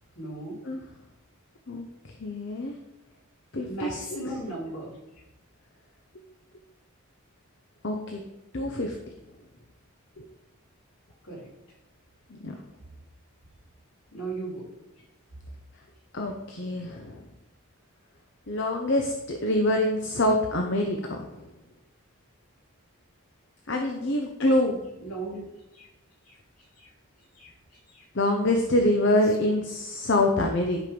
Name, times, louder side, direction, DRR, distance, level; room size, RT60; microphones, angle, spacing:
voice 1, 0.1-0.6 3.7-5.0 11.2-11.5 14.1-14.7 25.0-25.5 25.7-25.9 26.3-26.4 26.8-26.9 27.3-27.5 27.9-28.1, right 2 dB, 70° left, -4 dB, 3.7 m, -36 dB
voice 2, 2.2-2.8 3.5-4.0 7.8-8.2 8.5-9.0 10.2-10.3 12.4-12.5 16.1-17.2 18.5-21.2 23.7-24.8 28.1-30.8, left 1 dB, 55° left, 3 dB, 0.9 m, -25 dB
11.0 x 5.1 x 5.3 m, 0.95 s
head